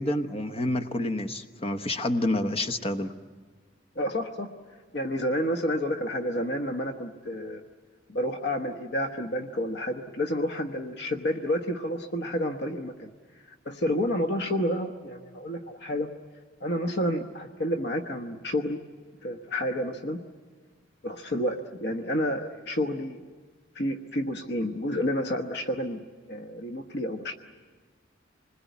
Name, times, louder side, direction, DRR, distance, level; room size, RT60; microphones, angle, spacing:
voice 1, 0.0-3.1, left 1 dB, 30° left, 6 dB, 1.0 m, -28 dB
voice 2, 3.9-4.5 4.9-7.6 8.1-13.1 13.6-16.1 16.6-18.8 19.2-20.2 21.0-23.3 23.7-26.0 26.3-27.4, equal, 60° left, 5 dB, 1.1 m, -30 dB
26.5 x 21.0 x 9.3 m, 1.4 s
head